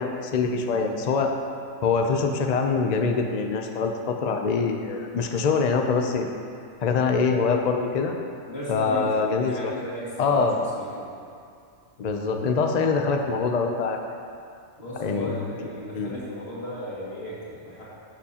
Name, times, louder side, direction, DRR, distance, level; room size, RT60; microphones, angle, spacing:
voice 1, 0.0-1.3 1.8-6.3 6.8-8.1 8.7-9.7 10.2-10.6 12.0-14.0 15.0-15.4 15.9-16.1, left 4 dB, 65° left, 3 dB, 0.4 m, -24 dB
voice 2, 8.5-11.1 14.8-17.8, equal, 45° left, -9 dB, 2.5 m, -36 dB
11.5 x 7.0 x 2.9 m, 2.4 s
omnidirectional pair, 1.5 m